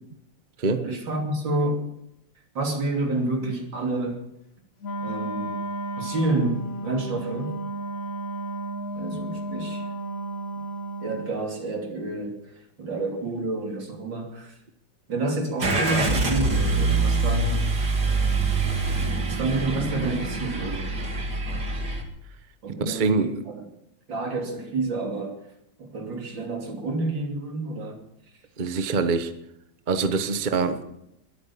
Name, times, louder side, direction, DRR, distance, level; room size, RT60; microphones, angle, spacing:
voice 1, 0.8-1.9 2.6-4.2 5.0-5.6 6.0-7.5 8.9-9.9 11.0-14.6 15.1-17.7 19.3-20.9 22.6-23.7 24.1-25.4 25.8-28.0, right 2 dB, 75° right, 3.6 m, -29 dB
Wind instrument woodwind instrument, 4.8-11.4, right 1 dB, 50° left, 1.6 m, -33 dB
Car / Engine starting, 15.6-22.0, right 3 dB, 60° right, 3.2 m, -25 dB
voice 2, 22.8-23.4 28.6-29.3 29.9-30.8, right 4 dB, 30° right, 1.0 m, -24 dB
22.0 x 9.1 x 7.1 m
omnidirectional pair, 2.0 m